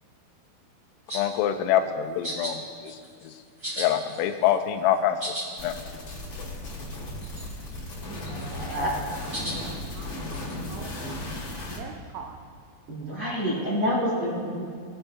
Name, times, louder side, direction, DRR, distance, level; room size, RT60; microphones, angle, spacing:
voice 1, 1.1-3.0 3.2-3.3 3.8-5.2 5.6-5.7, left 10 dB, 90° left, 8 dB, 3.3 m, -25 dB
sound 1, 1.1-1.4 2.2-2.5 2.8-3.3 3.6-4.6 4.9-5.5 5.8-5.9 6.1-6.2 6.5-6.9 7.2-7.7 8.1-8.7 9.3-9.6 10.3-10.5, right 1 dB, 25° right, 1.2 m, -35 dB
sound 2, 5.6-11.8, left 1 dB, 40° left, 1.8 m, -36 dB
voice 2, 8.3-8.9 9.4-9.6 12.9-14.6, equal, 65° right, -8 dB, 1.3 m, -28 dB
voice 3, 9.4-11.2 11.7-12.4, right 6 dB, 80° right, 3 dB, 2.8 m, -43 dB
22.0 x 7.9 x 2.2 m, 2.2 s
omnidirectional pair, 5.9 m